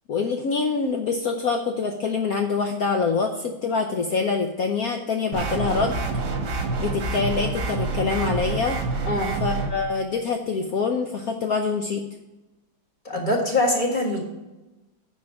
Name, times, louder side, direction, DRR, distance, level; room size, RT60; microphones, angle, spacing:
voice 1, 0.1-6.0 6.8-8.8 9.4-12.0, left 4 dB, 65° left, 4 dB, 0.9 m, -25 dB
sound 1, 5.3-9.7, right 3 dB, 50° right, 1.3 m, -27 dB
voice 2, 13.0-14.2, left 1 dB, 25° left, -1 dB, 1.7 m, -23 dB
9.2 x 5.2 x 5.8 m, 1.0 s
omnidirectional pair, 2.2 m